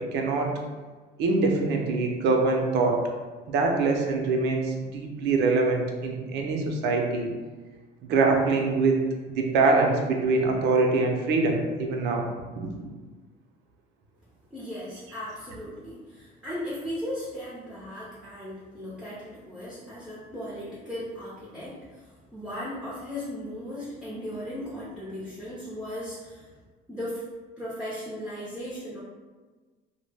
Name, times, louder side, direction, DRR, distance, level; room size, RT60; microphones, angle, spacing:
voice 1, 0.1-0.5 1.2-3.0 3.5-7.3 8.0-9.0 9.3-12.2 12.6-12.9, right 3 dB, 65° right, 2 dB, 0.5 m, -24 dB
voice 2, 14.5-26.5 26.9-27.3 27.6-29.0, equal, 5° right, -8 dB, 0.5 m, -37 dB
2.1 x 2.0 x 3.3 m, 1.3 s
cardioid pair, 120°, 19 cm